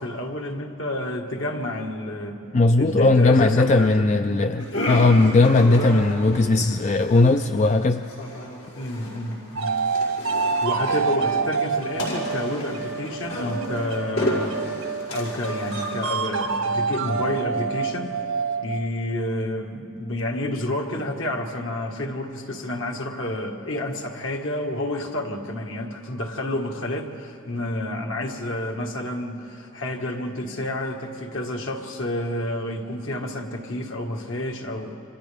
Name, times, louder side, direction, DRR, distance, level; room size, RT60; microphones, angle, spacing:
voice 1, 0.0-2.4 2.8-4.1 8.7-9.8 10.6-14.5 15.1-18.2 18.6-34.9, left 1 dB, 65° left, 1 dB, 1.7 m, -29 dB
voice 2, 2.5-8.0, left 2 dB, 35° left, 7 dB, 0.4 m, -18 dB
sound 1, 4.6-16.5, equal, 85° left, 5.7 m, -32 dB
sound 2, 9.6-19.0, right 5 dB, 80° right, 1.3 m, -27 dB
29.0 x 26.0 x 3.5 m, 3.0 s
head